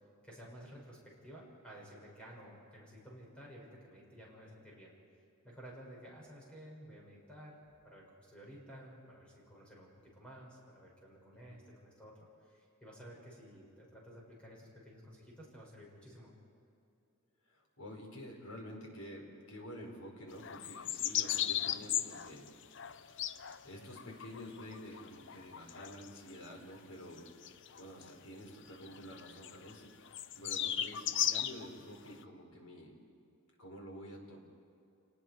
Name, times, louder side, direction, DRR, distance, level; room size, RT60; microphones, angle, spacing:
voice 1, 0.2-4.9 5.4-7.6 7.8-16.3, equal, 5° left, -4 dB, 6.8 m, -53 dB
voice 2, 17.5-23.3 23.6-27.2 27.8-29.9 30.4-32.9 33.6-34.4, equal, 85° left, 0 dB, 4.9 m, -49 dB
sound 1, 20.4-26.4 26.8-26.9 27.2-28.1 28.9-29.7 30.1-31.7 32.1-32.2, left 11 dB, 60° left, 0.6 m, -37 dB
29.5 x 19.5 x 4.8 m, 2.7 s
head